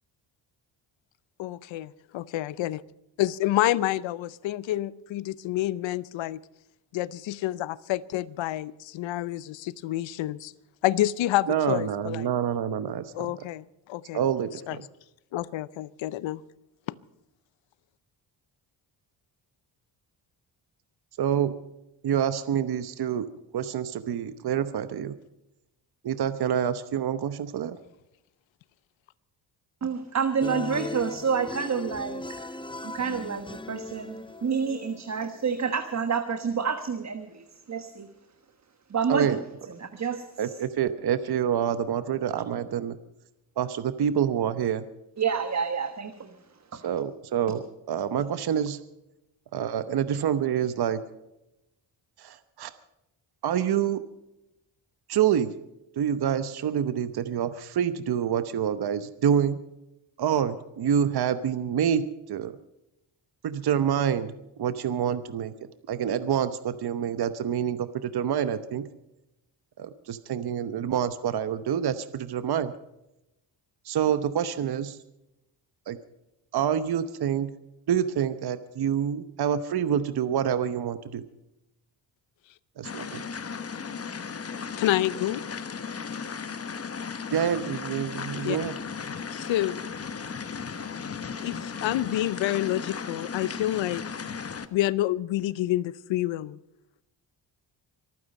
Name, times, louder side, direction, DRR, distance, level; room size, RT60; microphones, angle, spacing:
voice 1, 1.4-2.8 3.2-6.4 6.9-10.5 10.8-12.3 13.1-13.6 13.9-14.2 14.7-14.8 15.3-16.4 84.8-85.4 88.4-88.6 89.3-89.8 91.4-94.0 94.7-96.6, left 14 dB, 85° left, 19 dB, 0.7 m, -28 dB
voice 2, 11.5-13.5 14.1-14.9 21.2-21.5 22.0-23.3 23.5-25.1 26.0-27.8 39.1-39.4 40.4-43.0 43.6-44.9 46.7-48.8 49.5-51.0 52.2-52.7 53.4-54.0 55.1-55.5 56.0-59.6 60.2-62.5 63.4-65.5 65.9-68.9 69.8-72.7 73.8-75.0 75.9-76.0 76.5-77.5 77.9-81.2 82.8-83.2 87.3-88.7, right 9 dB, 55° right, 12 dB, 1.0 m, -27 dB
voice 3, 29.8-32.6 32.8-38.1 38.9-39.4 39.8-40.5 45.2-46.3 46.7-46.8, right 6 dB, 35° right, 7 dB, 1.3 m, -29 dB
sound 1, 30.4-35.7, left 2 dB, 10° left, 0.7 m, -39 dB
sound 2, 82.8-94.7, left 6 dB, 30° left, 1.0 m, -36 dB
25.0 x 9.5 x 5.4 m, 0.89 s
cardioid pair, 95°, 45 cm